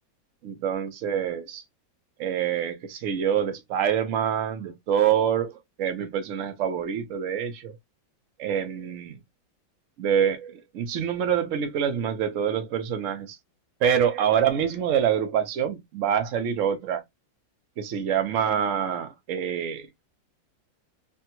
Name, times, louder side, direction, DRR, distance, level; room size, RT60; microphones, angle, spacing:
voice 1, 0.4-1.6 2.2-7.7 8.4-9.2 10.0-13.4 13.8-17.0 17.8-20.0, right 8 dB, 65° right, 0.8 m, -26 dB
3.3 x 2.2 x 2.9 m
omnidirectional pair, 2.1 m